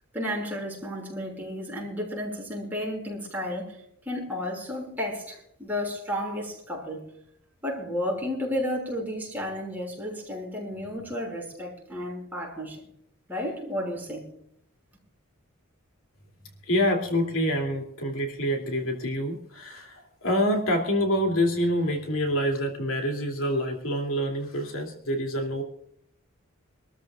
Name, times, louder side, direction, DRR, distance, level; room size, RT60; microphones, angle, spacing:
voice 1, 0.1-3.8 4.1-7.1 7.6-12.9 13.3-14.3, left 1 dB, 10° right, 6.1 m, -32 dB
voice 2, 16.7-25.6, equal, 70° left, 2.9 m, -26 dB
26.0 x 13.5 x 2.5 m
head